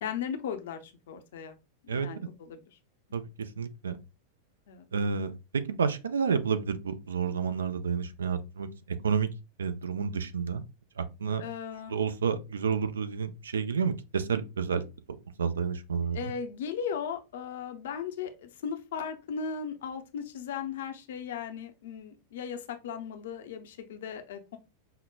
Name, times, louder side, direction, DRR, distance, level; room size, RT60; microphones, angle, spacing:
voice 1, 0.0-1.6 1.9-2.8 4.7-4.9 11.4-12.0 16.1-24.6, left 7 dB, 60° left, 0.5 m, -37 dB
voice 2, 3.1-4.0 4.9-5.3 5.7-8.7 9.0-9.3 9.6-10.6 11.0-11.4 11.9-14.9 15.4-16.3, right 6 dB, 70° right, 0.4 m, -30 dB
5.6 x 2.1 x 2.2 m
figure-of-eight pair, 90°, 0 cm